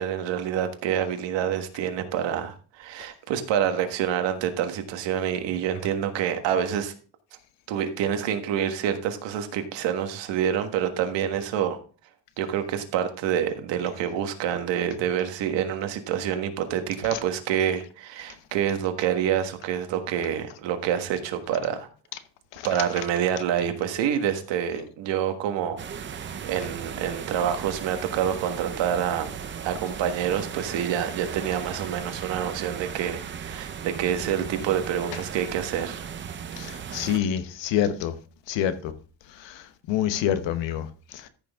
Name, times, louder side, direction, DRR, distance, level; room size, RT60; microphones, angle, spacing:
voice 1, 0.0-6.9 7.7-11.8 12.4-21.9 22.6-29.3 29.6-36.0, right 9 dB, 80° right, 1.6 m, -27 dB
sound 1, 25.8-37.2, right 7 dB, 25° right, 0.6 m, -37 dB
voice 2, 36.6-38.1 38.5-38.9 39.4-40.9 41.1-41.3, left 10 dB, 75° left, 1.1 m, -27 dB
14.0 x 6.2 x 3.6 m
cardioid pair, 175°, 44 cm